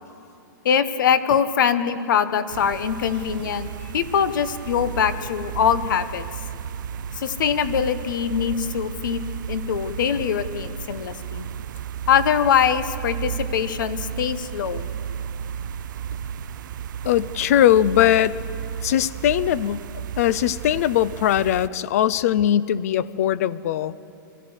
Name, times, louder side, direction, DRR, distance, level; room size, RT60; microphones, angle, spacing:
voice 1, 0.6-6.2 7.1-9.2 9.5-11.5 12.1-14.9, left 8 dB, 65° left, 13 dB, 1.1 m, -23 dB
sound 1, 2.5-21.7, right 9 dB, 65° right, 0.4 m, -33 dB
voice 2, 17.0-18.4 18.8-19.9 20.2-24.0, left 11 dB, 45° left, 19 dB, 0.5 m, -20 dB
25.5 x 14.0 x 8.0 m, 2.6 s
supercardioid pair, 170°, 11 cm